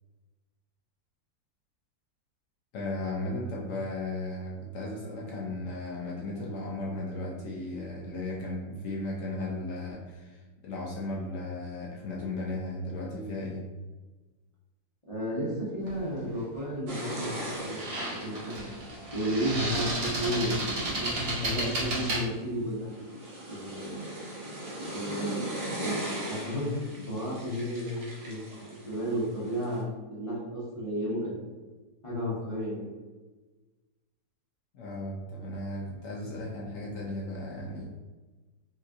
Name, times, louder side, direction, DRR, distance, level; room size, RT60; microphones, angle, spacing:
voice 1, 2.7-13.7 34.7-37.8, left 2 dB, 80° left, -4 dB, 0.7 m, -35 dB
voice 2, 15.1-17.4 17.6-18.7 19.1-22.9 23.5-24.1 24.9-31.3 32.0-32.9, equal, 30° left, -9 dB, 0.6 m, -33 dB
sound 1, 15.9-16.1 17.5-22.2, right 2 dB, 55° right, 1.2 m, -32 dB
sound 2, 16.9-29.8, right 1 dB, 80° right, 1.5 m, -40 dB
4.1 x 2.4 x 2.5 m, 1.2 s
omnidirectional pair, 2.1 m